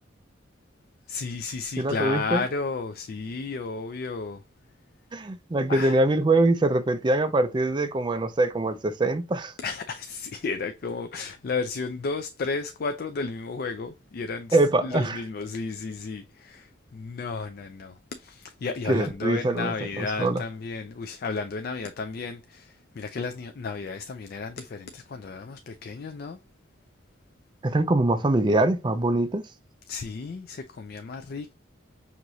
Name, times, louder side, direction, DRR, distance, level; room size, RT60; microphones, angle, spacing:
voice 1, 1.1-4.4 5.7-6.0 9.6-26.4 29.9-31.5, left 4 dB, 50° left, 0.4 m, -33 dB
voice 2, 1.8-2.5 5.1-9.5 14.5-15.2 18.9-20.4 27.6-29.4, right 2 dB, 25° right, 0.4 m, -23 dB
6.1 x 2.9 x 2.6 m
head